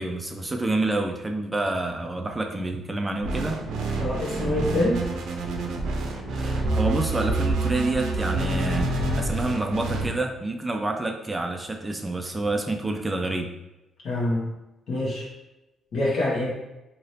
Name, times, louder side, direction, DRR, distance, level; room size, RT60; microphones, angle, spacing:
voice 1, 0.0-3.6 6.3-13.5, right 2 dB, 20° right, 3 dB, 0.3 m, -28 dB
sound 1, 3.2-10.1, right 2 dB, 80° right, 0.5 m, -27 dB
voice 2, 4.0-5.0 14.0-14.5 14.9-15.3 15.9-16.5, left 1 dB, 65° left, -4 dB, 1.2 m, -25 dB
2.8 x 2.7 x 3.1 m, 1.0 s
cardioid pair, 90°, 0 cm